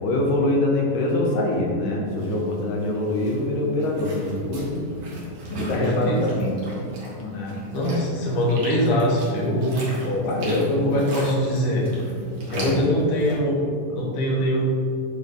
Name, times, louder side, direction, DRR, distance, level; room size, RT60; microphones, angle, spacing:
voice 1, 0.0-4.8 5.6-6.5 7.2-7.6 10.0-10.9 12.5-12.8, left 1 dB, 75° left, -1 dB, 2.5 m, -24 dB
sound 1, 2.1-13.4, equal, 45° right, 1.8 m, -38 dB
voice 2, 5.5-6.2 7.7-9.8 10.5-11.8 12.5-13.6 13.9-14.6, equal, 55° left, -4 dB, 1.9 m, -23 dB
10.0 x 4.1 x 3.5 m, 2.4 s
omnidirectional pair, 3.9 m